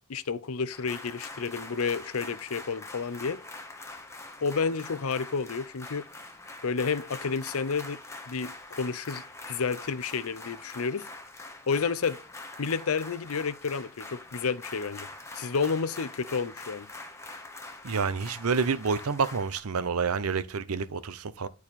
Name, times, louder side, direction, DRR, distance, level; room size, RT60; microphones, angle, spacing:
voice 1, 0.1-3.4 4.4-6.0 6.6-8.0 8.3-11.1 11.7-12.2 12.6-15.1 15.3-16.9, left 5 dB, 70° left, 0.6 m, -30 dB
sound 1, 0.7-19.6, left 2 dB, 15° left, 1.0 m, -44 dB
voice 2, 17.8-21.5, right 5 dB, 75° right, 0.7 m, -28 dB
10.5 x 4.7 x 4.2 m
head